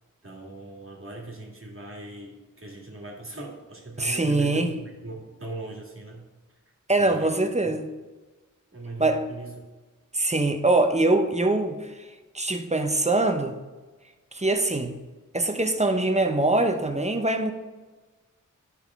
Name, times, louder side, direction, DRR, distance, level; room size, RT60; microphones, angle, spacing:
voice 1, 0.2-6.2 7.0-7.3 8.7-9.5, right 2 dB, 40° right, -2 dB, 1.9 m, -39 dB
voice 2, 4.0-4.7 6.9-7.9 9.0-9.2 10.1-12.1 12.3-13.6 14.3-15.0 15.3-17.5, right 2 dB, 20° right, 6 dB, 0.8 m, -23 dB
10.5 x 5.7 x 3.6 m, 1.2 s
wide cardioid pair, 70°, 32 cm